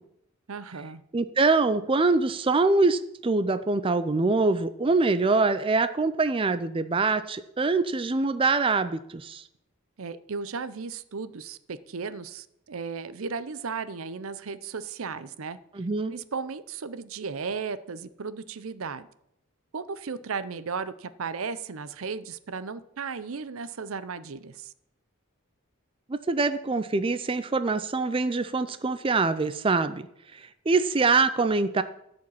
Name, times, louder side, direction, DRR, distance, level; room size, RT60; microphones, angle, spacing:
voice 1, 0.5-1.0 10.0-15.6 16.1-19.1 19.7-24.7, right 5 dB, 70° right, 15 dB, 0.6 m, -35 dB
voice 2, 1.1-9.4 15.8-16.1 26.1-30.1 30.4-31.8, right 3 dB, 25° right, 11 dB, 0.4 m, -24 dB
13.5 x 5.1 x 8.5 m, 0.79 s
head